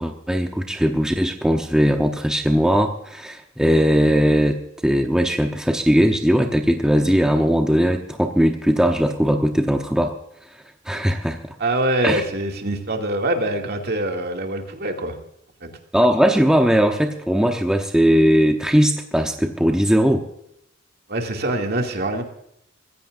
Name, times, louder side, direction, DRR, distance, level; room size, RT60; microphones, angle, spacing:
voice 1, 0.0-4.6 4.8-10.1 10.9-11.4 12.0-12.2 15.9-20.3, equal, 5° right, 3 dB, 0.9 m, -19 dB
voice 2, 11.6-15.2 21.1-22.2, right 1 dB, 55° right, 2 dB, 2.5 m, -24 dB
23.5 x 15.5 x 2.6 m, 0.78 s
head